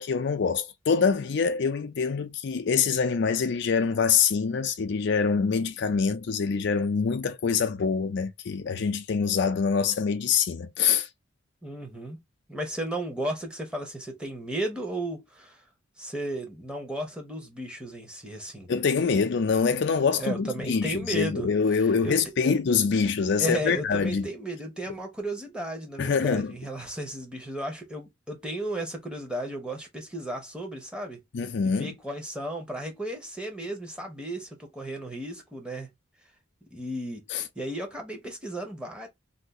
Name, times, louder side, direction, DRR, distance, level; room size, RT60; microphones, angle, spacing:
voice 1, 0.0-11.1 18.7-24.3 26.0-26.5 31.3-31.9 37.3-37.4, left 5 dB, 60° left, 0.4 m, -25 dB
voice 2, 11.6-12.2 12.5-15.6 16.0-18.7 20.2-21.5 22.0-22.5 23.4-31.2 31.6-35.9 36.7-39.1, right 1 dB, 5° right, 0.9 m, -34 dB
2.6 x 2.5 x 3.6 m
head